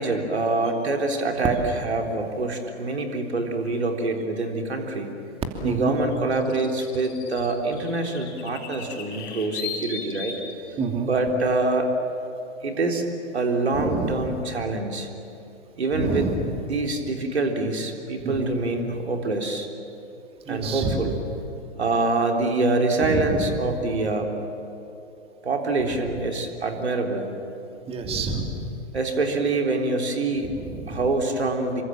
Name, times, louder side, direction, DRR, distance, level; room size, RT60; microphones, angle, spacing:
voice 1, 0.0-5.1 5.6-10.3 11.0-11.9 12.6-13.1 13.3-15.1 15.8-16.3 16.7-19.7 20.5-21.2 21.8-24.4 25.4-27.3 28.9-30.5 30.9-31.8, right 2 dB, 65° right, 3 dB, 3.8 m, -25 dB
sound 1, 1.5-1.7 4.2-4.3 6.0-10.5, left 6 dB, 30° left, 4.5 m, -37 dB
voice 2, 10.8-11.1 13.7-14.3 15.9-16.6 18.2-18.5 20.5-21.1 23.0-23.5 27.9-28.6 30.4-31.0, right 3 dB, 15° right, 4 dB, 2.8 m, -28 dB
28.0 x 24.5 x 7.5 m, 2.9 s
figure-of-eight pair, 115°, 34 cm